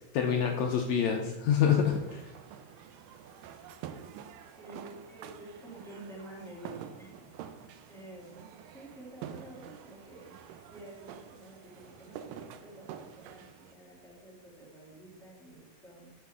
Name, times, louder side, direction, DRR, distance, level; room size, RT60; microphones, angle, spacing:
voice 1, 0.1-2.3, left 8 dB, 75° left, 2 dB, 1.6 m, -27 dB
sound 1, 1.6-13.7, right 9 dB, 85° right, 2.3 m, -47 dB
voice 2, 4.6-7.3 7.9-10.4 10.7-16.1, right 1 dB, ahead, -6 dB, 2.0 m, -50 dB
9.5 x 6.9 x 3.6 m, 1.0 s
omnidirectional pair, 3.9 m